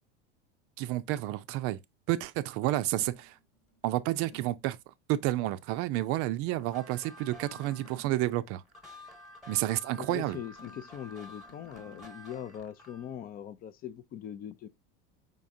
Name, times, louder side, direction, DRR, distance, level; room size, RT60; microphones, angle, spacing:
voice 1, 0.8-1.8 2.1-3.3 3.8-4.8 5.1-8.6 9.5-10.4, right 15 dB, 50° right, 0.5 m, -30 dB
sound 1, 3.0-4.8 6.5-8.4 10.6-12.1, equal, 70° left, 1.4 m, -56 dB
sound 2, 6.6-13.1, left 1 dB, ahead, 1.2 m, -51 dB
voice 2, 10.0-14.7, left 9 dB, 30° left, 0.4 m, -41 dB
5.2 x 3.6 x 2.6 m
supercardioid pair, 120°, 29 cm